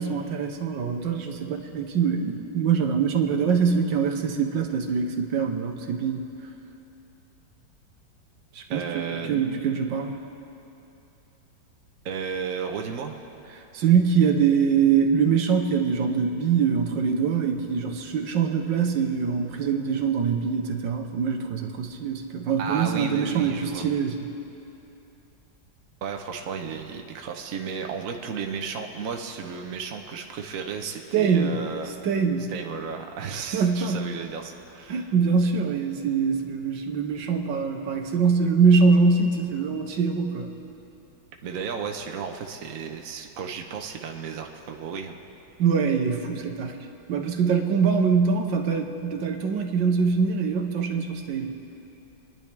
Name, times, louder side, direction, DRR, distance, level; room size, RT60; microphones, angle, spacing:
voice 1, 0.0-6.3 8.6-10.1 13.7-24.3 31.1-31.6 32.0-32.5 33.3-34.1 34.9-40.5 45.6-46.7 47.1-51.5, right 6 dB, 75° right, 4 dB, 1.6 m, -23 dB
voice 2, 8.7-9.4 12.0-13.2 22.6-23.9 26.0-31.9 32.5-35.1 41.4-45.1, right 6 dB, 55° right, 3 dB, 1.2 m, -33 dB
29.5 x 10.5 x 3.4 m, 2.8 s
omnidirectional pair, 2.0 m